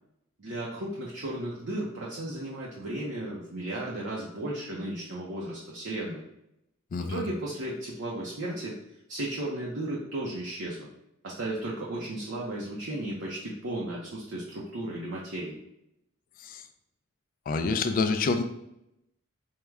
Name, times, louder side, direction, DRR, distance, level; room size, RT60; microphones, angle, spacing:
voice 1, 0.4-6.2 7.0-8.8 9.1-10.9 11.2-15.6, right 1 dB, 60° right, -4 dB, 0.6 m, -35 dB
voice 2, 6.9-7.2 16.4-16.6 17.5-18.4, left 4 dB, 40° left, 8 dB, 0.3 m, -27 dB
4.6 x 2.1 x 3.4 m, 0.83 s
head